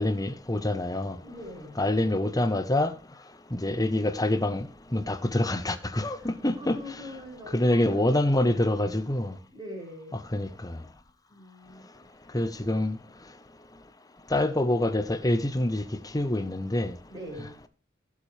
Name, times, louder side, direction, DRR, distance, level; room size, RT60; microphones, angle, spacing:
voice 1, 0.0-1.2 1.8-2.9 3.5-4.7 4.9-6.8 7.5-9.4 10.1-10.7 12.3-13.0 14.3-15.8 16.1-16.9, left 1 dB, 20° left, 1.0 m, -26 dB
voice 2, 1.2-1.8 6.2-8.8 9.5-10.1 11.3-11.9 17.1-17.6, equal, 25° right, 5.9 m, -43 dB
19.0 x 7.5 x 3.4 m
head